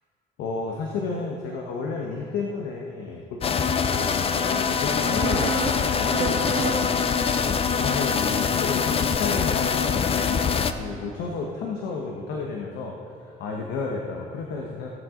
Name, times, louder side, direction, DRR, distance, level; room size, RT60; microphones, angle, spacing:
voice 1, 0.4-6.8 7.4-10.4 10.8-13.0 13.2-14.9, left 4 dB, 85° left, 0 dB, 1.2 m, -32 dB
sound 1, 3.4-10.7, left 6 dB, 35° left, 0.6 m, -24 dB
sound 2, 4.1-9.3, right 5 dB, 55° right, 1.2 m, -35 dB
19.0 x 8.0 x 3.8 m, 2.6 s
cardioid pair, 110°, 17 cm